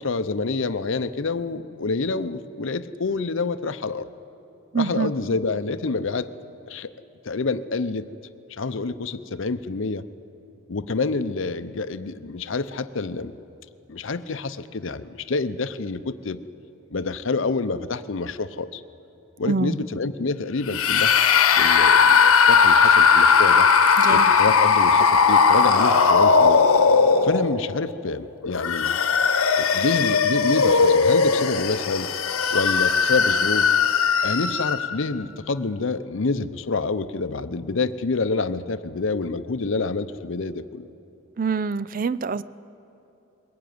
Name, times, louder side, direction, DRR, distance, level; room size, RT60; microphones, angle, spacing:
voice 1, 0.0-4.1 4.7-6.3 6.7-6.9 7.2-8.1 8.5-10.1 10.7-13.3 13.9-16.4 16.9-18.8 19.4-21.1 21.6-23.7 24.1-26.6 27.2-29.0 29.6-32.1 32.5-33.8 34.2-40.9, left 3 dB, 65° left, 12 dB, 0.6 m, -27 dB
voice 2, 4.7-5.1 19.5-19.8 24.0-24.3 41.4-42.4, right 4 dB, 40° right, 17 dB, 0.4 m, -25 dB
sound 1, 20.7-27.7 28.4-35.0, left 5 dB, 90° left, 1.0 m, -18 dB
21.5 x 15.0 x 9.4 m, 2.9 s
head